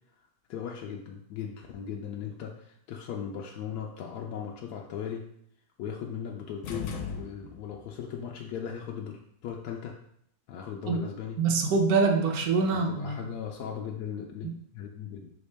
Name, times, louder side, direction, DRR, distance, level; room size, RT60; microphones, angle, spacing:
voice 1, 0.5-5.3 5.8-10.0 10.5-11.4 12.7-15.3, left 8 dB, 90° left, 0 dB, 1.1 m, -38 dB
sound 1, 6.6-7.9, left 6 dB, 65° left, 0.9 m, -37 dB
voice 2, 11.4-13.2 14.4-14.5, right 4 dB, 70° right, 2 dB, 1.1 m, -25 dB
5.5 x 2.9 x 3.3 m, 0.71 s
omnidirectional pair, 1.6 m